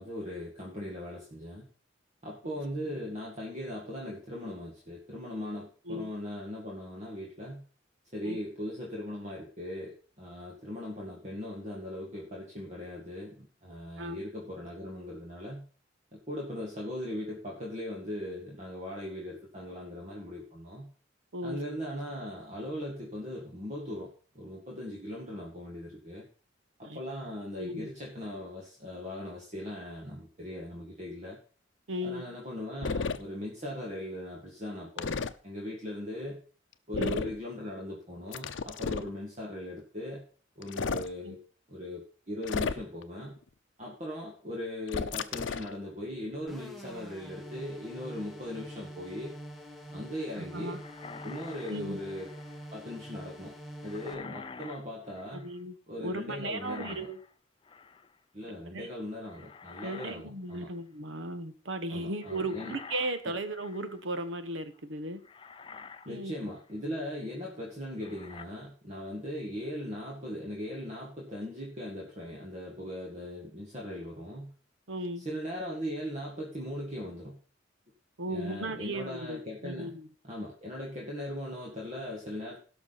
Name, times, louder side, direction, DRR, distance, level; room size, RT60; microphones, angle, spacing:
voice 1, 0.0-1.7 2.2-7.6 8.1-15.7 16.1-20.9 21.4-26.3 26.8-31.4 32.0-36.4 36.9-40.3 40.6-41.4 41.7-43.4 43.8-49.4 49.9-50.8 51.2-52.3 52.7-53.5 53.8-55.5 55.9-57.1 58.3-60.7 61.9-62.8 63.3-63.4 66.1-74.5 75.2-77.4 78.3-79.9 80.2-82.6, left 1 dB, 35° right, -2 dB, 1.9 m, -39 dB
voice 2, 27.6-27.9 31.9-32.4 36.9-37.2 41.2-41.3 50.4-50.8 51.7-52.0 55.3-55.7 56.0-57.2 58.7-58.9 59.8-65.2 66.1-66.5 74.9-75.3 78.2-80.1, right 1 dB, 85° right, 10 dB, 1.2 m, -36 dB
sound 1, 32.8-33.2 35.0-35.3 36.9-37.4 38.3-39.1 40.6-41.1 42.4-43.0 44.9-45.7, left 4 dB, 80° left, 0.6 m, -32 dB
sound 2, 46.5-54.1, equal, ahead, 1.2 m, -45 dB
sound 3, 50.7-52.7 53.8-55.6 56.5-57.3 57.6-58.1 59.3-60.2 60.5-60.8 62.2-64.0 64.7-64.8 65.2-66.1 66.6-66.7 68.0-68.4, left 5 dB, 25° left, 0.4 m, -48 dB
17.0 x 6.1 x 4.1 m, 0.40 s
head